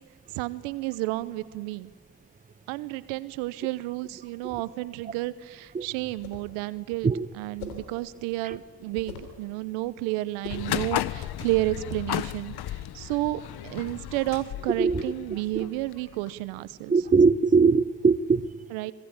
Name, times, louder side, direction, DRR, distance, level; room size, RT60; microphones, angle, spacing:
voice 1, 0.3-1.9 2.7-7.1 7.3-16.9 18.7-18.9, right 18 dB, 80° right, 16 dB, 1.0 m, -31 dB
sound 1, 6.1-6.5 7.6-7.9 9.0-9.4 10.4-10.8, left 7 dB, 90° left, 3.7 m, -41 dB
sound 2, 10.5-16.3, left 13 dB, 55° left, 1.0 m, -34 dB
voice 2, 16.9-18.6, right 4 dB, 15° right, 16 dB, 0.9 m, -21 dB
26.0 x 19.0 x 9.0 m, 1.4 s
hypercardioid pair, 60°, 47 cm